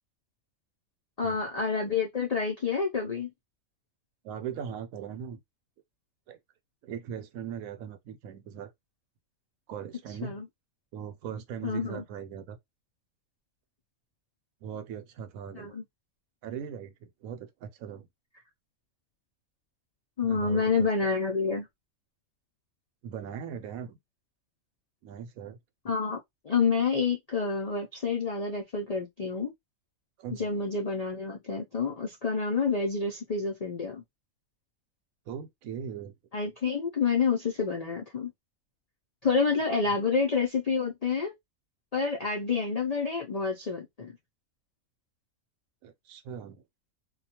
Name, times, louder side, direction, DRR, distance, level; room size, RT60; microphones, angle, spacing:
voice 1, 1.2-3.3 10.2-10.5 11.6-12.0 15.5-15.8 20.2-21.7 25.8-26.2 26.4-29.5 30.3-34.0 36.3-38.3 39.2-41.3 41.9-44.1, left 5 dB, 90° left, 0.3 m, -28 dB
voice 2, 4.2-5.4 6.3-6.4 6.8-8.7 9.7-10.4 10.9-12.6 14.6-15.7 16.4-18.1 20.2-20.9 23.0-24.0 25.0-25.6 30.2-30.5 35.3-36.1 45.8-46.6, right 8 dB, 80° right, 1.0 m, -39 dB
2.4 x 2.2 x 2.8 m
omnidirectional pair, 1.5 m